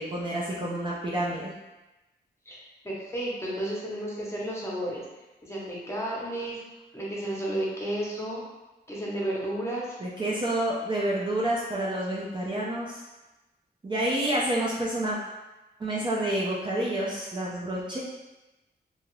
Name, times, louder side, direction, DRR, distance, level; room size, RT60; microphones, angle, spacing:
voice 1, 0.0-1.5 10.0-13.0 13.8-15.2 15.8-18.0, right 1 dB, 30° right, -6 dB, 0.4 m, -29 dB
voice 2, 2.5-5.0 5.4-6.6 6.9-8.4 8.9-10.0, right 1 dB, 15° left, -5 dB, 0.7 m, -32 dB
2.8 x 2.3 x 3.0 m, 1.1 s
wide cardioid pair, 155°, 18 cm